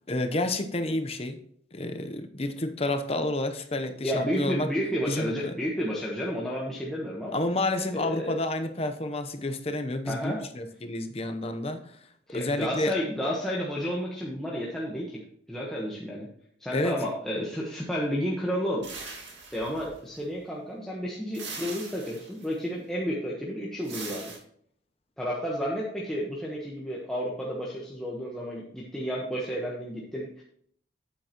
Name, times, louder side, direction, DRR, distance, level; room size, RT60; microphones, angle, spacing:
voice 1, 0.1-1.4 1.7-4.7 5.1-5.5 7.3-12.0 12.3-12.9 16.7-17.0, left 2 dB, 30° left, 7 dB, 0.8 m, -30 dB
voice 2, 4.0-7.4 7.9-8.4 10.1-10.4 12.3-15.2 15.5-16.3 16.6-18.8 19.5-24.3 25.2-30.4, equal, ahead, -5 dB, 1.2 m, -31 dB
sound 1, 18.8-20.3 21.3-22.5 23.8-24.4, right 4 dB, 65° right, 2.1 m, -41 dB
8.9 x 8.4 x 3.0 m, 0.65 s
head